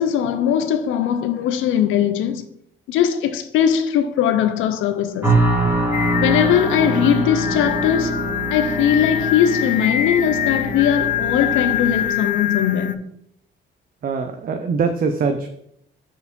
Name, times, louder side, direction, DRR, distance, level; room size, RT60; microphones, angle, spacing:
voice 1, 0.0-2.4 2.9-5.3 6.2-8.2 8.5-13.0, left 9 dB, 85° left, 0.6 m, -20 dB
sound 1, 5.2-12.1, right 2 dB, 10° right, 1.9 m, -24 dB
Singing, 5.9-12.9, left 9 dB, 40° left, 0.4 m, -24 dB
voice 2, 14.0-15.5, right 5 dB, 45° right, 0.6 m, -22 dB
4.7 x 4.4 x 5.2 m
cardioid pair, 90°, 20 cm